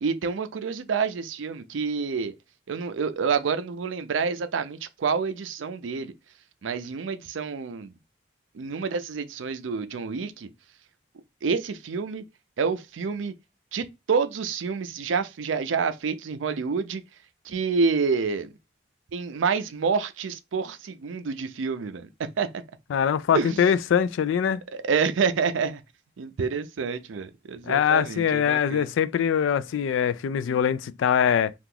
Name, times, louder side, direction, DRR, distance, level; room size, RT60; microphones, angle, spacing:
voice 1, 0.0-2.3 2.7-6.1 6.6-7.9 8.5-10.5 11.4-12.2 12.6-13.3 13.7-17.0 17.5-18.5 19.1-22.5 23.3-23.6 24.7-25.8 26.2-28.9, right 5 dB, 90° right, 0.5 m, -28 dB
voice 2, 22.9-24.6 27.6-31.5, left 8 dB, 90° left, 0.3 m, -23 dB
2.9 x 2.4 x 3.7 m
head